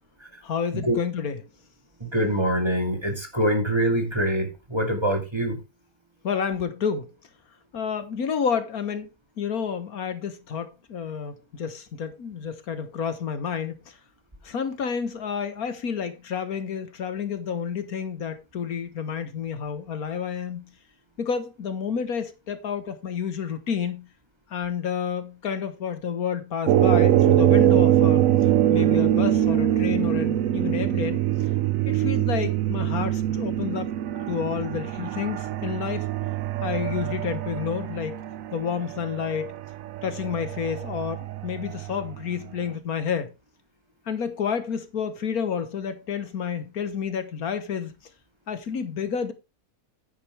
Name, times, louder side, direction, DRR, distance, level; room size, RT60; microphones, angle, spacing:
voice 1, 0.4-1.4 6.2-7.1 7.7-9.1 9.4-13.8 14.4-20.7 21.2-24.1 24.5-28.2 28.7-31.2 31.9-33.9 34.3-36.1 36.6-38.2 38.5-39.5 40.0-43.3 44.1-47.9 48.5-49.3, left 7 dB, 75° left, 1.7 m, -30 dB
voice 2, 2.0-5.6, right 1 dB, 15° right, 2.2 m, -25 dB
sound 1, 26.7-42.1, right 12 dB, 65° right, 1.1 m, -23 dB
10.0 x 9.3 x 3.4 m
omnidirectional pair, 1.6 m